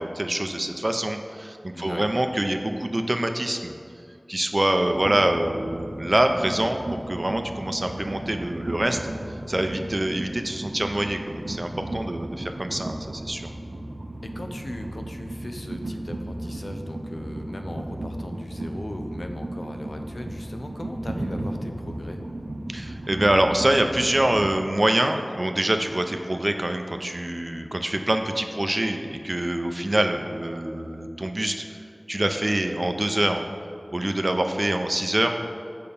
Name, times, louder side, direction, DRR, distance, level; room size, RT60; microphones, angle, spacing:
voice 1, 0.0-3.7 4.3-6.8 7.1-9.0 9.5-13.4 22.7-31.6 32.1-33.4 33.9-35.4, right 1 dB, 40° right, 6 dB, 0.6 m, -25 dB
voice 2, 1.7-2.1 14.2-22.2, left 1 dB, 60° left, 4 dB, 0.6 m, -38 dB
Train, 4.9-24.6, right 1 dB, 80° right, 0.6 m, -35 dB
6.8 x 5.6 x 5.4 m, 2.3 s
wide cardioid pair, 55°, 0 cm